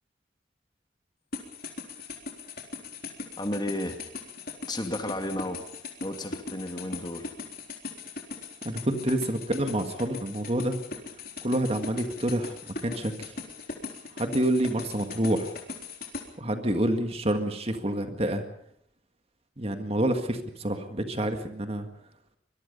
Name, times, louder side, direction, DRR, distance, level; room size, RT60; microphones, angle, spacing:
sound 1, 1.3-16.2, left 4 dB, 55° left, 3.9 m, -39 dB
voice 1, 3.4-4.0 4.7-5.6 6.0-7.3, left 1 dB, 25° left, 5 dB, 2.3 m, -32 dB
voice 2, 8.6-10.8 11.4-13.4 14.1-15.6 16.4-18.4 19.6-21.9, right 1 dB, 35° right, 6 dB, 1.9 m, -28 dB
24.5 x 21.5 x 5.4 m, 0.71 s
head